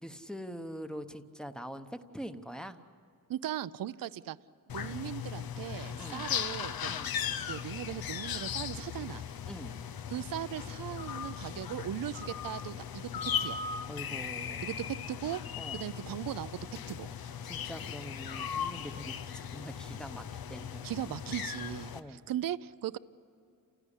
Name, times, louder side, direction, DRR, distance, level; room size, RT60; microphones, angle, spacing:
voice 1, 0.0-2.8 4.8-5.0 6.0-6.3 6.9-7.1 9.5-9.7 13.9-14.7 15.6-15.8 17.4-20.9 21.9-22.2, equal, ahead, 7 dB, 0.9 m, -44 dB
voice 2, 3.3-4.4 4.7-6.9 7.5-9.2 10.1-13.1 13.4-13.6 14.6-15.4 15.7-16.6 16.9-17.1 20.8-21.9 22.3-23.0, right 11 dB, 70° right, 16 dB, 0.6 m, -38 dB
sound 1, 4.7-22.0, left 8 dB, 85° left, 1.0 m, -38 dB
29.5 x 16.5 x 10.0 m, 2.5 s
wide cardioid pair, 150°, 35 cm